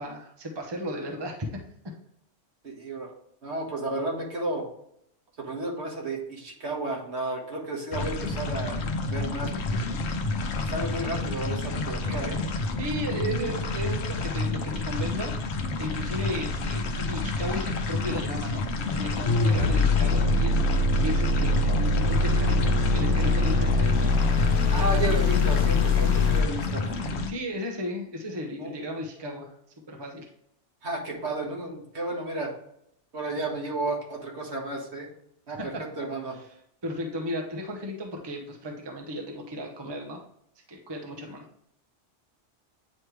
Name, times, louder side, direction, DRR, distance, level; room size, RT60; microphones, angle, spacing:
voice 1, 0.0-1.3 12.8-15.3 15.8-24.2 24.8-25.2 27.3-29.5 29.9-30.3 35.5-35.7 36.8-40.3 40.7-41.5, equal, 25° right, 1 dB, 0.9 m, -35 dB
voice 2, 2.6-3.1 3.4-4.7 5.4-8.8 9.1-9.9 10.6-12.4 24.7-27.2 28.6-28.7 30.8-32.6 33.1-35.1 35.5-36.4, right 2 dB, 65° right, -1 dB, 1.7 m, -32 dB
sound 1, 7.9-27.3, left 3 dB, 65° left, 1.0 m, -30 dB
sound 2, 19.2-26.4, left 3 dB, 90° left, 1.2 m, -23 dB
9.3 x 3.2 x 3.2 m, 0.74 s
omnidirectional pair, 1.2 m